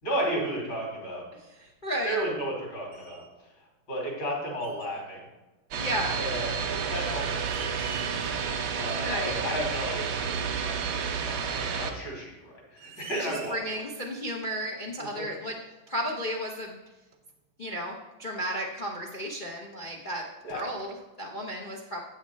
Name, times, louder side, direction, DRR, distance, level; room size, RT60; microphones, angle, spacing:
voice 1, 0.0-1.2 2.0-3.2 3.6-5.3 6.1-8.0 8.7-13.8 15.0-15.3 20.4-20.7, equal, 70° left, -2 dB, 3.6 m, -34 dB
voice 2, 1.6-2.2 5.8-6.2 9.0-9.3 13.2-15.5 15.9-16.8 17.6-20.2 20.5-22.0, equal, 55° left, -1 dB, 0.5 m, -33 dB
sound 1, 1.7-2.6 2.9-3.3 4.6-5.0 6.4-6.5 7.0-8.8 9.1-9.2 10.7-10.8 11.8-11.9 12.5-12.6 12.7-13.8 15.1-15.2 16.0-16.1 16.4-16.5 17.1-17.3 18.7-19.6 20.0-20.1 20.5-21.0, right 7 dB, 65° right, 1.3 m, -47 dB
sound 2, 5.7-11.9, right 6 dB, 85° right, 1.7 m, -30 dB
8.8 x 6.3 x 4.6 m, 1.1 s
omnidirectional pair, 2.2 m